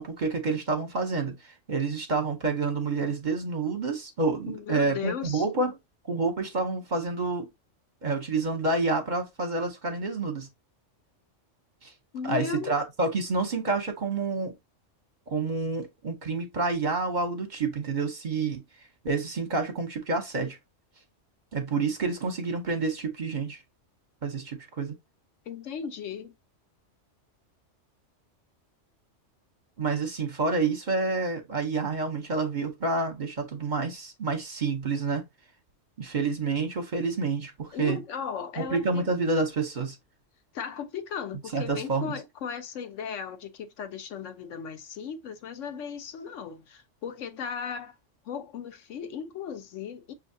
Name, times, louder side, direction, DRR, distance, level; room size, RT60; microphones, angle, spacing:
voice 1, 0.0-1.4 1.7-5.8 6.1-7.5 8.0-10.5 11.8-11.9 12.3-14.5 15.3-18.6 19.0-20.6 21.5-23.6 24.2-24.9 29.8-35.2 36.0-38.0 38.6-40.0 41.5-42.1, right 3 dB, 40° right, 0.9 m, -28 dB
voice 2, 4.5-5.4 12.1-12.8 25.4-26.3 37.7-39.1 40.5-47.9 48.2-50.1, left 7 dB, 85° left, 1.1 m, -36 dB
6.3 x 2.7 x 2.6 m
omnidirectional pair, 1.3 m